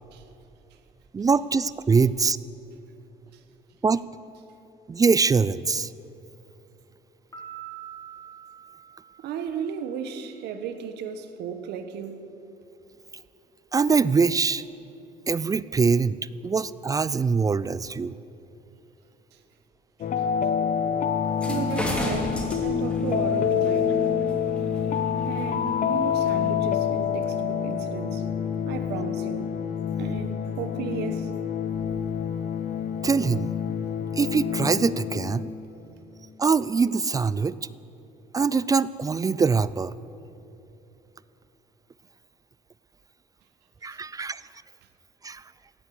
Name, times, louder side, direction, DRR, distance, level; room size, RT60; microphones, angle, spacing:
voice 1, 1.1-2.4 3.8-4.0 4.9-5.9 13.7-14.6 15.3-16.2 16.4-18.1 33.0-33.5 34.2-35.5 36.4-37.6 38.3-40.0 43.8-44.4 45.2-45.4, right 5 dB, 20° right, 0.3 m, -23 dB
Piano, 7.3-9.9, right 10 dB, 20° left, 3.7 m, -44 dB
voice 2, 9.2-12.2 21.5-24.0 25.2-28.3 28.6-29.5 30.0-31.3, right 7 dB, 80° right, 1.3 m, -35 dB
sound 1, 20.0-35.7, left 8 dB, 50° left, 1.0 m, -27 dB
sound 2, 21.3-26.5, right 1 dB, 5° left, 2.9 m, -34 dB
17.0 x 9.2 x 8.5 m
cardioid pair, 110°, 17 cm